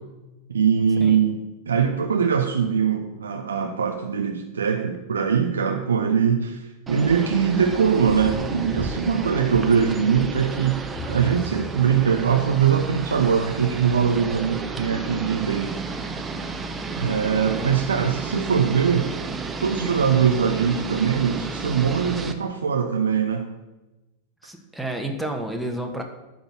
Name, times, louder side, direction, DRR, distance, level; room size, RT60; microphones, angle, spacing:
voice 1, 0.5-10.8 11.1-16.1 17.0-19.1 19.6-23.5, right 7 dB, 70° right, 4 dB, 0.7 m, -22 dB
sound 1, 6.9-22.3, right 4 dB, 15° right, 0.9 m, -32 dB
Bowed string instrument, 11.0-14.5, right 1 dB, 25° left, 1.2 m, -42 dB
voice 2, 24.4-26.0, right 1 dB, ahead, 3 dB, 1.4 m, -30 dB
11.5 x 4.0 x 7.3 m, 1.1 s
figure-of-eight pair, 90°, 0 cm